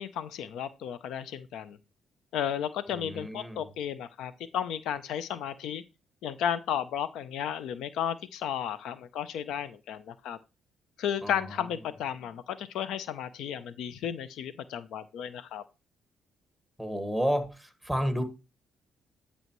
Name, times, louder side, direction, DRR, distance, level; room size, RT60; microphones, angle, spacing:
voice 1, 0.0-1.8 2.3-5.8 6.2-10.4 11.0-15.6, left 9 dB, 85° left, 0.5 m, -33 dB
voice 2, 2.9-3.6 11.2-11.3 16.8-17.5 17.8-18.2, equal, 5° left, 1.7 m, -30 dB
11.0 x 5.4 x 3.0 m
cardioid pair, 90°, 0 cm